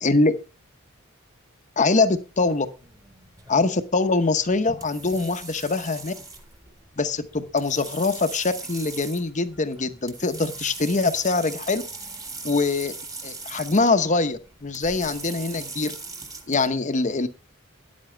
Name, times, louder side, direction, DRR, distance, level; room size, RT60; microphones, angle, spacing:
voice 1, 0.0-0.4 1.8-2.7 3.5-6.1 7.0-11.8 12.4-12.9 13.2-15.9 16.5-17.3, left 3 dB, 35° left, 10 dB, 0.9 m, -23 dB
sound 1, 1.8-16.7, right 3 dB, 15° right, 1.6 m, -40 dB
13.0 x 9.7 x 3.3 m, 0.32 s
head